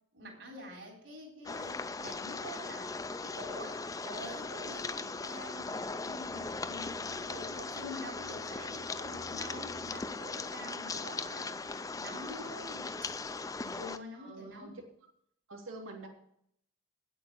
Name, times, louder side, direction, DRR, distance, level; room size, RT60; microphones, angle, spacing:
voice 1, 0.1-3.0 3.2-13.1 13.6-14.8, equal, 65° right, 0 dB, 3.8 m, -47 dB
sound 1, 1.4-14.0, left 3 dB, 15° left, 0.4 m, -39 dB
sound 2, 6.2-10.1, left 1 dB, 85° left, 1.6 m, -54 dB
voice 2, 10.6-11.0 14.1-14.8 15.5-16.1, right 2 dB, 85° right, -1 dB, 2.7 m, -47 dB
9.3 x 8.3 x 7.3 m, 0.69 s
head